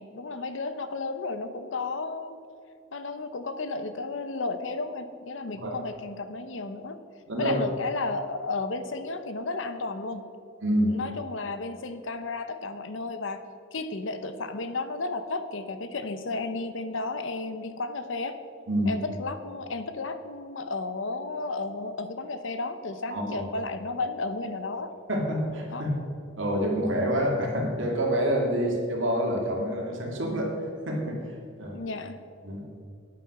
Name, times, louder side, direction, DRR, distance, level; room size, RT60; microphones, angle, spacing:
voice 1, 0.0-2.4 2.9-7.0 7.4-10.2 10.9-13.4 13.7-18.4 18.9-24.9 25.7-25.8 28.6-28.7 31.7-32.2, left 3 dB, 70° left, 10 dB, 0.8 m, -33 dB
voice 2, 7.3-7.6 10.6-10.9 18.7-18.9 23.1-23.4 25.1-25.9 26.4-30.5 30.9-31.2 31.6-31.8 32.4-32.6, equal, 70° right, -1 dB, 2.4 m, -27 dB
9.8 x 9.2 x 5.9 m, 2.4 s
head